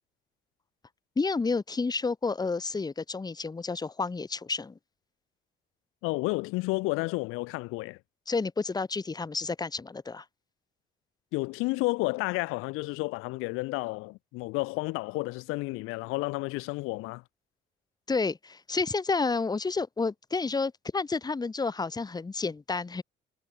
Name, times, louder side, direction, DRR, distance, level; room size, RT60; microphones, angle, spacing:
voice 1, 1.2-4.8 8.3-10.2 18.1-23.0, left 4 dB, 20° left, 1.0 m, -30 dB
voice 2, 6.0-8.0 11.3-17.2, left 23 dB, 90° left, 0.8 m, -31 dB
cardioid pair, 85°, 21 cm